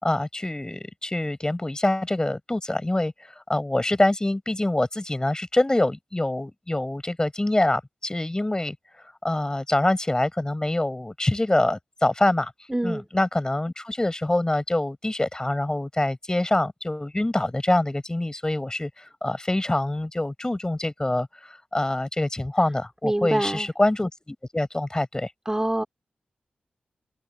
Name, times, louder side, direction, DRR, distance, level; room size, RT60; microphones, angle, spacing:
voice 1, 0.0-8.7 9.2-12.5 12.8-25.3, left 1 dB, 20° left, 6.8 m, -25 dB
voice 2, 12.7-13.0 23.0-23.7 25.4-25.8, right 1 dB, 15° right, 3.3 m, -25 dB
cardioid pair, 50°, 3 cm